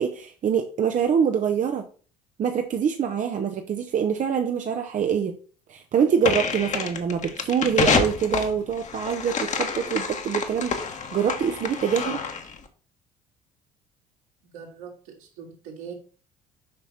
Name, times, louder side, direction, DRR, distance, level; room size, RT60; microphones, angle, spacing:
voice 1, 0.0-1.8 2.4-5.3 5.7-12.2, right 7 dB, 40° right, 5 dB, 0.9 m, -25 dB
sound 1, 6.2-12.6, left 5 dB, 40° left, 1.4 m, -28 dB
voice 2, 14.5-15.9, right 7 dB, 70° right, -1 dB, 2.9 m, -41 dB
7.8 x 5.7 x 4.3 m, 0.39 s
figure-of-eight pair, 55°, 20 cm